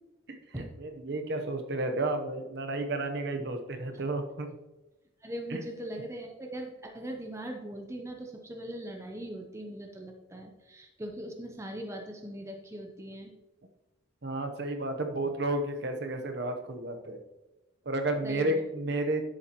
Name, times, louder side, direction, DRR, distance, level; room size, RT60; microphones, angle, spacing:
voice 1, 0.3-4.5 5.5-5.6 14.2-17.2 17.8-19.2, right 2 dB, 55° right, 5 dB, 0.9 m, -32 dB
voice 2, 5.2-13.3 18.2-18.6, right 1 dB, 15° right, 2 dB, 0.7 m, -40 dB
10.5 x 7.4 x 3.0 m, 1.1 s
head